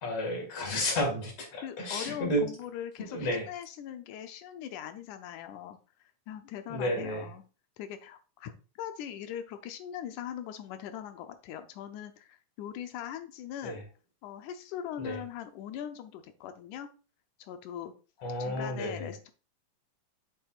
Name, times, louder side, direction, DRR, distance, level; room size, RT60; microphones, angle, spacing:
voice 1, 0.0-2.5 3.1-3.5 6.7-7.3 13.6-13.8 15.0-15.2 18.2-19.1, equal, 55° left, 2 dB, 3.0 m, -32 dB
voice 2, 1.6-5.8 6.3-7.4 7.8-8.5 8.8-13.8 14.2-16.9 17.4-17.9 18.4-19.3, left 9 dB, 90° left, 8 dB, 2.2 m, -40 dB
7.7 x 7.5 x 2.5 m, 0.33 s
omnidirectional pair, 3.4 m